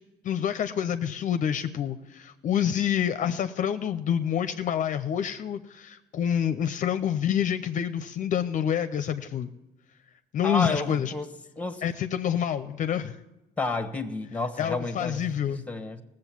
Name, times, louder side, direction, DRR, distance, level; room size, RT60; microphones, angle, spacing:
voice 1, 0.2-9.5 10.3-11.1 11.8-13.2 14.6-15.6, left 9 dB, 50° left, 0.6 m, -27 dB
voice 2, 10.4-11.8 13.6-16.0, left 3 dB, 10° left, 1.1 m, -31 dB
17.5 x 7.7 x 7.3 m
cardioid pair, 110°, 17 cm